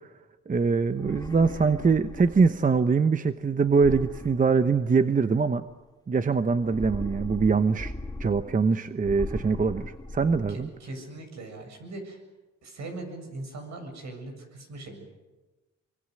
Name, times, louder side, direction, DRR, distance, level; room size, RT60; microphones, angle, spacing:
voice 1, 0.5-5.7 6.1-7.9 8.2-10.7, right 5 dB, 25° right, 10 dB, 0.9 m, -23 dB
sound 1, 0.9-2.8 3.7-5.2 6.6-8.7 9.0-10.7, left 1 dB, 10° left, 1.9 m, -39 dB
voice 2, 10.5-12.2 12.6-15.1, right 2 dB, 65° right, 4 dB, 7.5 m, -40 dB
24.0 x 24.0 x 7.9 m, 1.2 s
cardioid pair, 90°, 30 cm